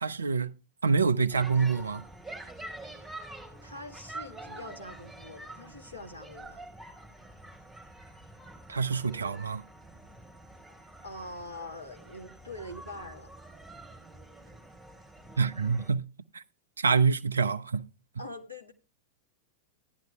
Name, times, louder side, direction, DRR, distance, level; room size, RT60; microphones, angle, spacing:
voice 1, 0.0-0.5 0.8-2.0 8.7-9.6 15.4-16.0 16.3-16.4 16.8-17.8, right 5 dB, 75° right, 0.4 m, -26 dB
sound 1, 1.3-15.9, right 2 dB, 10° right, 3.5 m, -47 dB
voice 2, 3.6-6.6 11.0-13.3 18.2-18.7, left 1 dB, 85° left, 1.4 m, -43 dB
15.5 x 10.5 x 2.2 m
figure-of-eight pair, 90°, 0 cm